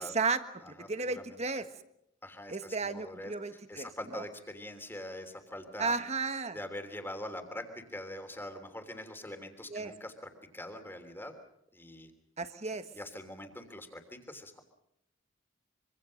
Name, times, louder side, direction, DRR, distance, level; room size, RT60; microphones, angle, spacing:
voice 1, 0.0-1.6 2.5-4.2 5.8-6.6 9.7-9.9 12.4-12.9, right 4 dB, 35° right, 10 dB, 1.5 m, -34 dB
voice 2, 0.6-1.4 2.2-6.0 6.5-10.1 10.5-11.3 11.7-12.1 12.9-14.6, left 1 dB, 10° left, 6 dB, 3.2 m, -43 dB
25.5 x 25.0 x 6.5 m, 0.78 s
head